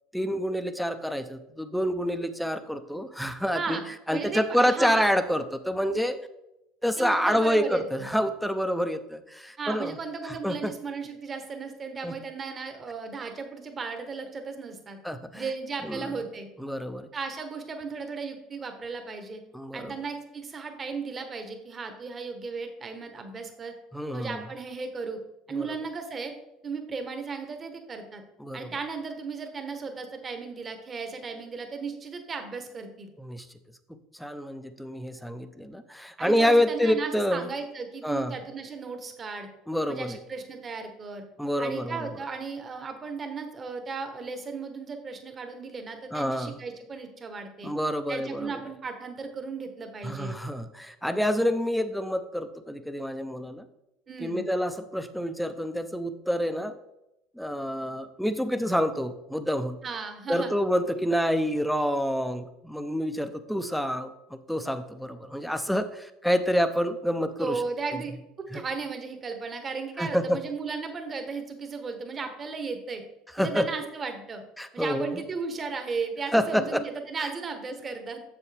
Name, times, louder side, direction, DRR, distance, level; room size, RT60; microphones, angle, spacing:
voice 1, 0.1-3.8 4.1-6.2 6.8-10.0 10.2-10.7 12.0-12.1 15.0-15.5 15.8-16.2 16.6-17.1 19.5-19.9 23.9-24.4 25.5-25.8 28.4-28.7 33.2-33.5 34.1-37.5 38.0-38.4 39.7-40.2 41.4-42.1 46.1-46.6 47.6-48.6 50.0-53.7 54.2-56.7 57.4-59.8 60.3-67.6 68.5-68.6 70.0-70.4 73.3-73.7 74.6-75.2 76.3-76.8 77.2-77.3, equal, ahead, 9 dB, 0.6 m, -28 dB
voice 2, 4.1-5.2 7.0-8.1 9.6-15.0 15.3-16.5 17.1-19.4 19.7-23.7 24.1-25.2 25.5-26.3 26.6-28.2 28.5-33.1 36.2-39.5 39.9-41.2 41.6-47.7 48.1-50.4 54.1-54.4 59.8-60.5 67.4-68.1 68.4-73.0 73.4-74.4 74.7-78.2, right 4 dB, 30° right, 6 dB, 1.1 m, -35 dB
7.2 x 6.9 x 3.4 m, 0.91 s
supercardioid pair, 120°, 0 cm